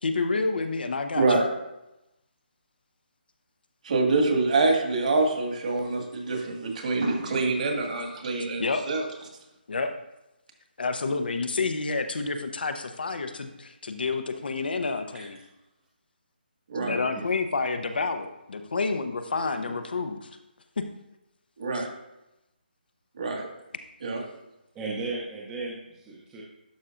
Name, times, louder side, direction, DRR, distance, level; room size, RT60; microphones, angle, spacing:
voice 1, 0.0-1.2 8.6-8.8 9.7-9.9 10.8-15.4 16.8-20.3 20.8-20.9 21.7-21.8, left 4 dB, 65° left, 7 dB, 0.8 m, -29 dB
voice 2, 1.2-1.5 3.8-9.0 16.7-16.9 21.6-21.9 23.2-23.5 24.0-24.2, right 3 dB, 45° right, 2 dB, 1.8 m, -25 dB
voice 3, 16.8-17.1 19.7-19.8 24.7-26.4, right 3 dB, 10° right, -4 dB, 0.7 m, -35 dB
11.5 x 5.5 x 2.5 m, 0.92 s
hypercardioid pair, 160°, 6 cm